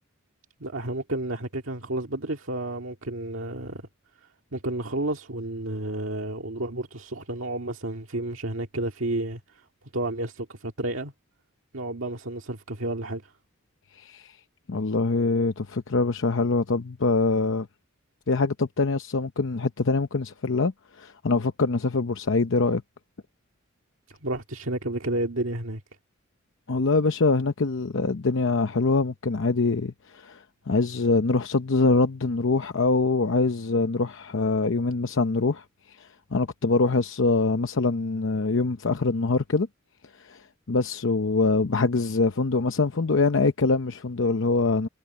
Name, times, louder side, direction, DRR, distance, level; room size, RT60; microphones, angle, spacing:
voice 1, 0.6-3.8 4.5-9.4 9.9-11.1 11.7-13.2 24.2-25.8, right 2 dB, 70° right, 2.0 m, -31 dB
voice 2, 14.0-14.3 14.7-17.7 18.3-20.7 21.0-22.8 26.7-30.4 30.7-35.6 36.3-39.7 40.3-40.4 40.7-44.9, left 3 dB, 65° left, 0.8 m, -24 dB
head